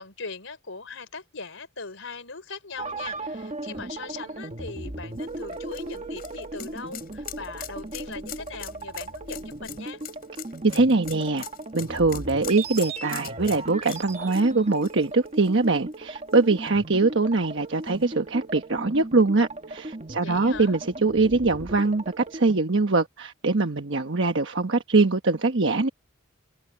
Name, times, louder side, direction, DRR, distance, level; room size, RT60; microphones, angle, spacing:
voice 1, 0.0-10.0 20.2-20.7, left 4 dB, 80° left, 4.0 m, -40 dB
sound 1, 2.8-22.6, right 2 dB, 35° right, 1.5 m, -37 dB
sound 2, 5.2-15.9 16.3-16.4 17.9-18.0, left 12 dB, 50° left, 5.9 m, -42 dB
voice 2, 10.6-11.5 11.7-25.9, right 3 dB, 65° right, 1.2 m, -23 dB
head